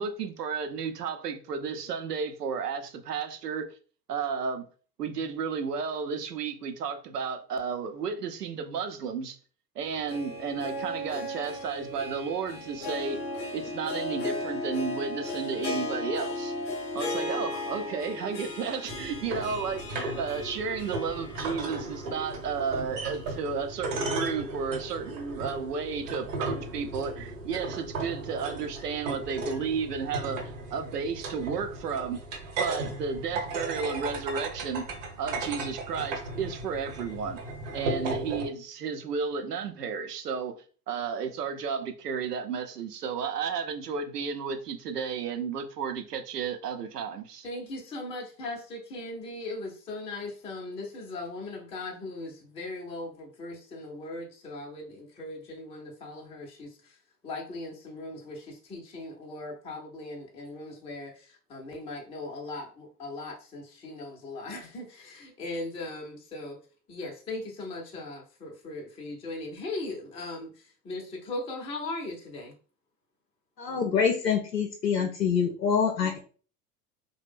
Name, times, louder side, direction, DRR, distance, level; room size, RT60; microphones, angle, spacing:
voice 1, 0.0-3.7 4.1-4.7 5.0-9.4 9.8-13.2 13.5-16.5 16.9-32.2 32.5-34.9 35.2-37.4 37.7-40.5 40.9-47.5, right 6 dB, 75° right, 0.7 m, -33 dB
Harp, 9.8-22.0 22.3-22.4 23.3-23.4, left 2 dB, 40° left, 0.8 m, -36 dB
sound 1, 18.9-38.5, right 2 dB, 50° right, 1.0 m, -36 dB
voice 2, 47.4-57.0 57.2-66.6 66.9-72.5, left 2 dB, 10° left, 0.6 m, -39 dB
voice 3, 73.6-76.2, left 6 dB, 85° left, 0.6 m, -26 dB
3.2 x 2.1 x 3.4 m
figure-of-eight pair, 80°, 48 cm